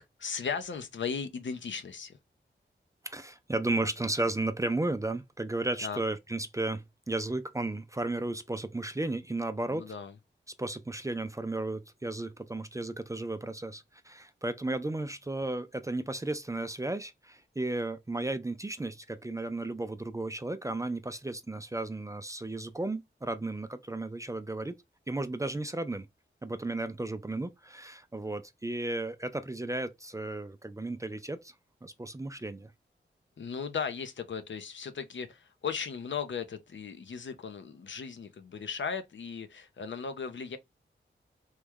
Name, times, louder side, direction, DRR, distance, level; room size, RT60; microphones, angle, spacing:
voice 1, 0.0-2.2 5.8-6.0 9.7-10.1 33.4-40.6, left 6 dB, 70° left, 0.6 m, -37 dB
voice 2, 3.0-9.9 10.6-24.7 25.1-26.1 26.4-31.5 31.8-32.7, right 2 dB, 15° right, 0.4 m, -34 dB
3.1 x 2.2 x 3.4 m
cardioid pair, 60°, 20 cm